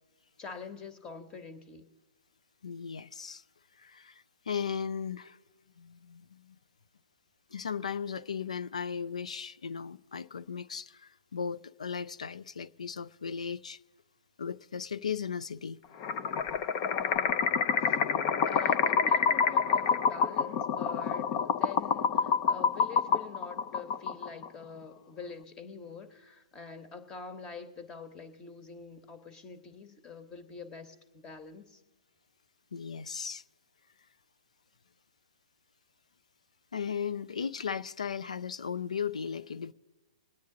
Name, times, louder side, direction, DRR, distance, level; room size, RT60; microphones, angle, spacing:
voice 1, 0.4-1.9 16.8-18.0 18.4-31.8, left 5 dB, 20° left, 1.2 m, -45 dB
voice 2, 2.6-3.4 3.8-5.4 5.8-6.6 7.5-13.8 14.4-15.8 32.7-33.4 36.7-39.7, left 6 dB, 75° left, 0.5 m, -36 dB
sound 1, 16.0-24.5, left 6 dB, 35° left, 0.6 m, -27 dB
21.5 x 9.3 x 3.8 m
hypercardioid pair, 125°, 4 cm